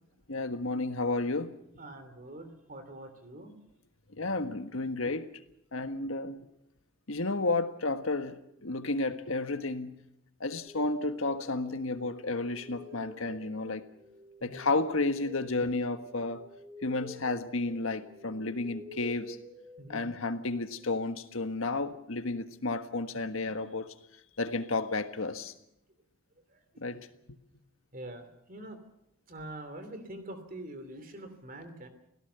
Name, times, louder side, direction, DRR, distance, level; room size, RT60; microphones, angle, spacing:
voice 1, 0.3-1.5 4.2-5.3 5.7-6.5 7.1-10.0 10.4-13.8 14.4-16.4 16.8-19.4 19.9-23.9 24.4-25.5 26.8-27.4, left 3 dB, 70° left, 1.5 m, -32 dB
voice 2, 1.8-3.5 14.4-14.7 19.8-20.1 26.5-26.6 27.9-28.8 29.3-31.9, right 1 dB, 40° right, 3.0 m, -44 dB
sound 1, 10.7-20.4, equal, 10° right, 1.6 m, -50 dB
25.5 x 17.0 x 6.9 m
head